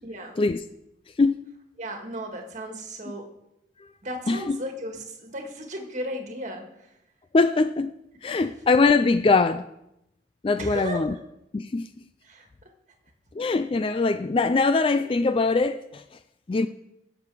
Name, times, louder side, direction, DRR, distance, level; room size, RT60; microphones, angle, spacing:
voice 1, 0.0-0.3 1.8-3.3 4.0-6.7 8.3-8.4 10.6-11.0 12.2-12.5, equal, 40° right, 1.7 m, -35 dB
voice 2, 4.3-4.6 7.3-7.9 8.2-9.7 10.4-11.1 11.5-11.9 13.4-16.0 16.5-16.7, left 3 dB, 30° left, 0.3 m, -22 dB
16.5 x 6.9 x 4.8 m
head